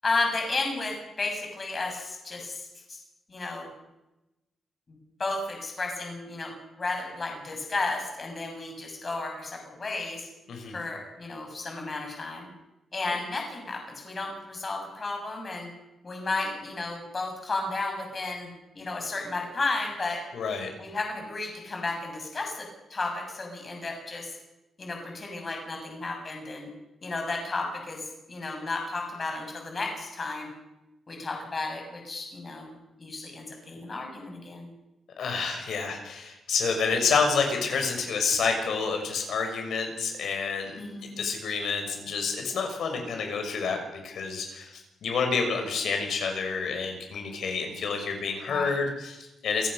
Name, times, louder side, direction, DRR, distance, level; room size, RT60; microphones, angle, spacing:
voice 1, 0.0-3.0 3.3-3.7 4.9-6.5 6.8-10.3 10.7-12.5 12.9-15.7 16.0-18.5 18.7-20.2 20.8-24.3 24.8-26.7 27.0-30.5 31.1-32.7 33.0-34.7 40.8-41.2 48.5-48.7, left 3 dB, 30° left, 2 dB, 6.4 m, -33 dB
voice 2, 20.3-20.7 35.2-40.8 41.2-43.8 44.0-49.7, left 5 dB, 70° left, 4 dB, 6.4 m, -28 dB
27.5 x 17.5 x 6.7 m, 0.96 s
wide cardioid pair, 150°, 0 cm